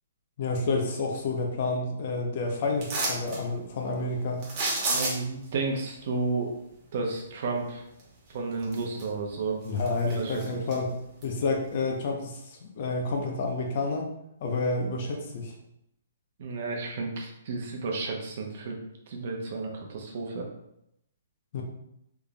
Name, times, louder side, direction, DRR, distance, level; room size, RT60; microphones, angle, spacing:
voice 1, 0.4-4.5 9.6-10.9 11.2-14.1 14.4-15.5 21.5-21.6, left 3 dB, 45° left, 1 dB, 0.7 m, -29 dB
sound 1, 2.8-3.4 4.4-5.4 8.0-8.1 8.6-9.3 9.6-10.8 11.2-11.3, right 2 dB, 30° right, 1.0 m, -30 dB
voice 2, 4.9-6.5 6.9-7.8 8.3-9.6 10.2-10.6 16.4-18.8 19.1-20.5, right 3 dB, 55° right, 1 dB, 0.8 m, -32 dB
3.8 x 3.4 x 2.3 m, 0.79 s
hypercardioid pair, 155°, 0 cm